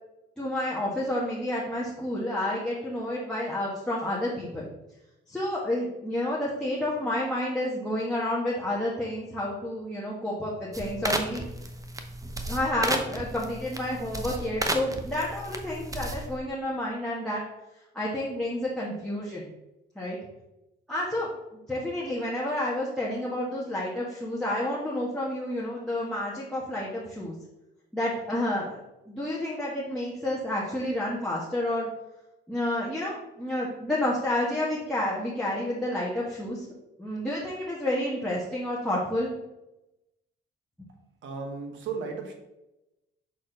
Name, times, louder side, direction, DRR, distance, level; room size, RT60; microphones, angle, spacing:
voice 1, 0.4-4.7 5.3-11.4 12.5-17.4 17.9-19.5 19.9-20.2 20.9-21.3 21.7-27.3 27.9-28.8 29.1-31.9 32.5-36.7 37.0-39.3, left 1 dB, 5° left, -5 dB, 1.3 m, -30 dB
sound 1, 10.7-16.4, right 2 dB, 15° right, 0.7 m, -33 dB
voice 2, 41.2-42.3, right 5 dB, 75° right, 3 dB, 1.3 m, -35 dB
6.3 x 4.2 x 3.9 m, 0.94 s
cardioid pair, 90°, 20 cm